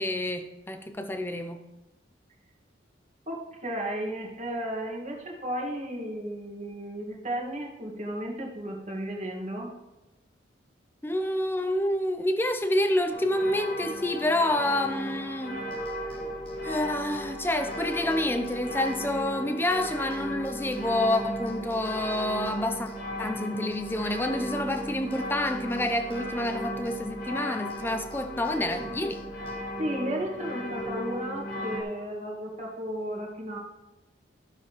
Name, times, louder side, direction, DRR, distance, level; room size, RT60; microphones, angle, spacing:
voice 1, 0.0-1.6 11.0-15.6 16.6-22.9 23.2-29.2, left 1 dB, 10° left, 0.5 m, -28 dB
voice 2, 3.3-9.7 29.8-33.6, equal, 35° right, 1.6 m, -34 dB
sound 1, 13.1-31.8, equal, 50° left, 1.4 m, -36 dB
sound 2, 15.7-19.4 19.7-23.4 23.7-27.4 27.7-29.6, left 1 dB, 30° left, 1.0 m, -50 dB
12.5 x 6.8 x 3.0 m
head